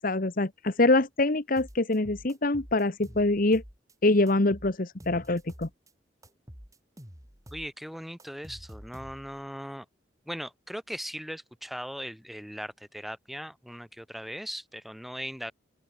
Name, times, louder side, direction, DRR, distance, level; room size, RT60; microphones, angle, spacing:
voice 1, 0.0-3.6 4.0-5.7, left 2 dB, 50° left, 1.2 m, -24 dB
sound 1, 1.6-3.9 4.3-5.9 6.2-9.5, equal, 20° right, 5.3 m, -48 dB
voice 2, 7.5-9.9 10.3-15.5, equal, ahead, 2.6 m, -39 dB
open air
head